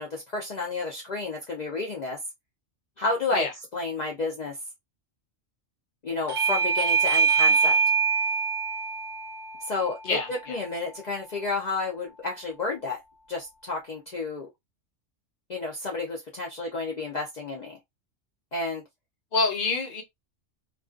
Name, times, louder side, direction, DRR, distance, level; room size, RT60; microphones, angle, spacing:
voice 1, 0.0-2.2 3.0-3.5 3.7-4.6 6.0-7.8 9.6-13.0 13.3-14.5 15.5-17.8 18.5-18.8, left 3 dB, 65° left, 0.4 m, -31 dB
Bell / Doorbell, 6.3-11.5, right 5 dB, 55° right, 0.7 m, -25 dB
voice 2, 10.0-10.6 19.3-20.0, left 3 dB, 50° left, 0.8 m, -27 dB
2.4 x 2.2 x 2.3 m
omnidirectional pair, 1.3 m